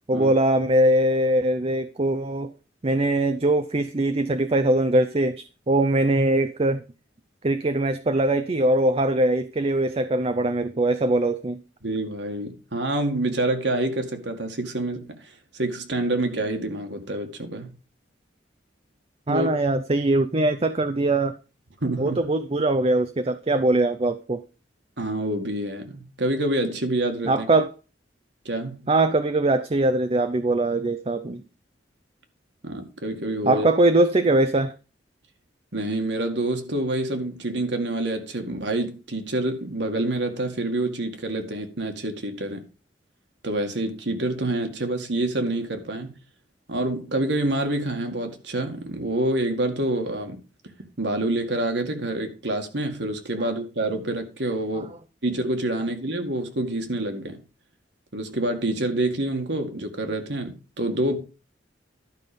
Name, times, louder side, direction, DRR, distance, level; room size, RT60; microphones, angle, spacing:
voice 1, 0.1-2.5 2.8-6.8 7.4-11.6 19.3-21.3 22.0-24.4 27.3-27.7 28.9-31.4 33.5-34.7 53.4-53.5, right 2 dB, 35° right, 0.6 m, -22 dB
voice 2, 11.8-17.7 19.3-19.5 21.8-22.2 25.0-27.3 28.5-28.9 32.6-33.7 35.7-42.6 43.4-46.2 46.7-50.4 51.0-54.9 55.2-57.4 58.1-61.2, right 1 dB, 70° right, 2.0 m, -27 dB
12.0 x 5.7 x 5.3 m
head